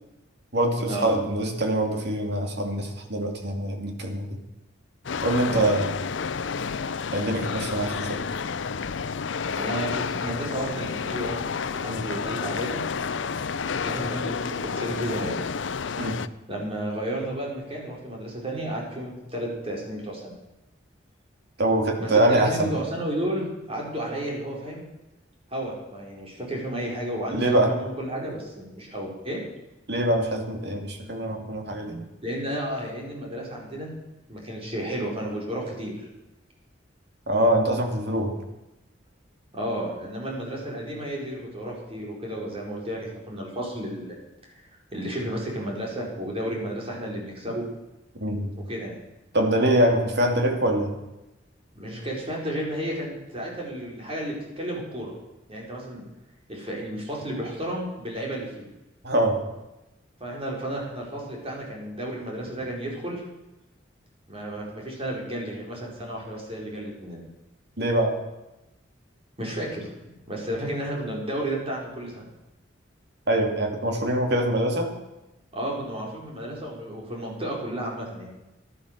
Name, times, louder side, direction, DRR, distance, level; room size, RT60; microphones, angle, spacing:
voice 1, 0.5-4.4 5.2-5.9 7.1-8.2 11.9-12.1 16.0-16.2 21.6-22.7 27.3-27.7 29.9-32.1 37.3-38.4 48.2-48.5 49.3-50.9 59.0-59.4 67.8-68.2 73.3-74.9, right 1 dB, 60° right, 2 dB, 2.7 m, -24 dB
sound 1, 5.0-16.3, left 5 dB, 70° left, 0.6 m, -30 dB
voice 2, 9.6-12.8 13.8-15.3 16.5-20.3 22.0-24.9 25.5-29.4 32.2-33.9 34.3-36.1 39.5-44.1 44.5-44.6 44.9-47.6 48.7-49.0 51.7-55.1 55.5-56.1 56.5-58.7 60.2-63.2 64.3-67.2 69.4-72.3 75.5-78.3, right 1 dB, 30° right, -2 dB, 4.7 m, -32 dB
15.5 x 11.5 x 6.7 m, 0.98 s
head